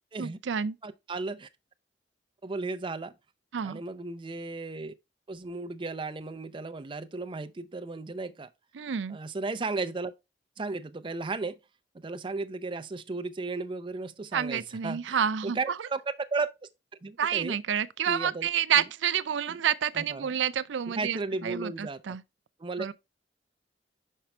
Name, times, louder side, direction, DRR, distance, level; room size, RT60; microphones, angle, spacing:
voice 1, 0.2-0.8 3.5-3.8 8.7-9.2 14.3-15.6 17.2-22.2 22.8-22.9, right 8 dB, 85° right, 0.5 m, -29 dB
voice 2, 0.8-1.5 2.4-3.1 3.6-4.9 5.3-8.5 9.1-10.1 10.6-11.6 11.9-16.5 17.0-17.6 18.1-18.5 19.5-19.6 19.9-20.3 21.0-22.2 22.6-22.9, right 3 dB, 30° right, 0.5 m, -35 dB
5.9 x 5.5 x 3.3 m
head